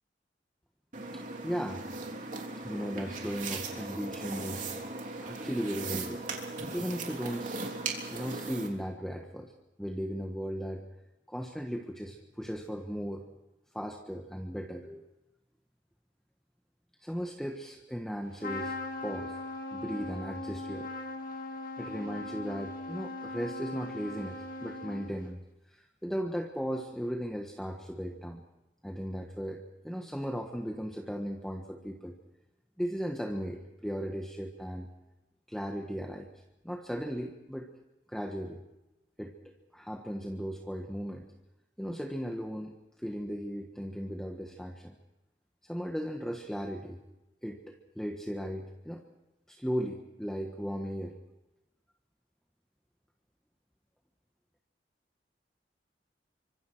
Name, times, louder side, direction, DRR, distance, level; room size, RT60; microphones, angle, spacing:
sound 1, 0.9-8.7, right 3 dB, 45° right, 3.4 m, -38 dB
voice 1, 1.1-1.8 2.6-4.7 5.2-6.2 6.7-7.5 8.1-9.5 9.8-10.8 11.3-13.2 13.7-15.0 17.0-19.4 19.7-20.9 21.8-25.4 25.7-28.4 28.8-29.6 29.8-32.1 32.8-34.9 35.5-36.3 36.6-37.7 38.1-38.6 39.2-41.3 41.8-44.9 45.6-47.0 47.4-49.0 49.5-51.2, equal, 5° left, 1 dB, 1.4 m, -36 dB
Trumpet, 18.4-25.3, left 2 dB, 50° left, 2.5 m, -39 dB
28.0 x 25.0 x 4.7 m, 0.98 s
head